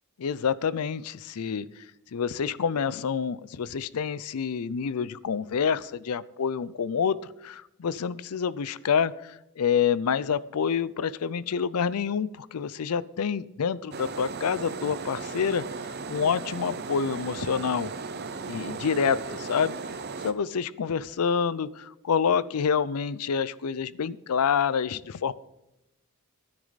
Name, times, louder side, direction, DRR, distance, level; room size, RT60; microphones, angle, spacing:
voice 1, 0.2-1.7 2.1-7.2 7.4-15.6 16.1-17.9 18.5-19.7 20.2-25.3, left 6 dB, 80° left, 19 dB, 0.5 m, -27 dB
sound 1, 13.9-20.3, right 4 dB, 45° right, 0.7 m, -36 dB
13.5 x 9.7 x 4.0 m, 0.90 s
head